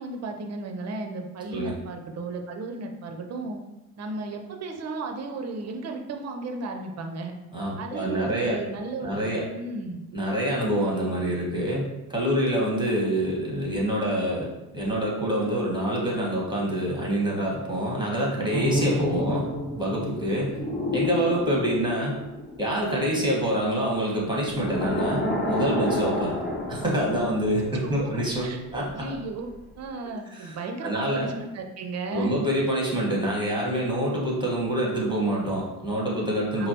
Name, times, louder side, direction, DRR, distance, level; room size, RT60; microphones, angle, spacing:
voice 1, 0.0-3.6 4.0-7.3 7.8-10.0 19.1-19.3 27.8-29.5 29.8-32.3 36.6-36.7, right 3 dB, 35° right, 4 dB, 0.6 m, -35 dB
voice 2, 7.5-8.6 9.0-9.5 10.1-19.5 19.8-20.6 20.9-22.2 22.6-26.4 26.7-29.1 30.3-30.5 30.8-31.3 32.1-36.7, right 1 dB, 10° right, -4 dB, 1.4 m, -26 dB
sound 1, 18.5-23.6 24.5-28.4 28.7-28.9, left 1 dB, 20° left, 1.1 m, -30 dB
4.9 x 2.0 x 2.9 m, 1.0 s
hypercardioid pair, 60°, 46 cm